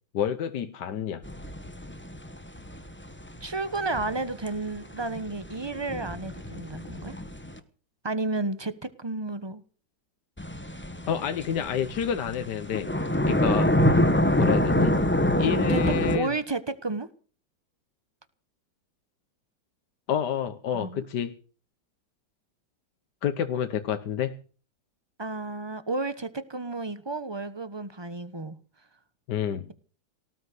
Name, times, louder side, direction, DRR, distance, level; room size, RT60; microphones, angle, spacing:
voice 1, 0.1-1.2 11.1-12.9 13.3-13.7 14.4-15.0 15.4-16.3 20.1-21.3 23.2-24.4 29.3-29.7, left 8 dB, 65° left, 1.5 m, -29 dB
sound 1, 1.2-7.6 10.4-16.2, left 1 dB, 5° left, 1.0 m, -26 dB
voice 2, 3.4-7.2 8.0-8.7 9.0-9.6 15.7-15.8 16.1-17.1 20.7-21.0 25.2-28.6, right 3 dB, 20° right, 0.9 m, -32 dB
18.5 x 9.5 x 8.0 m
omnidirectional pair, 2.1 m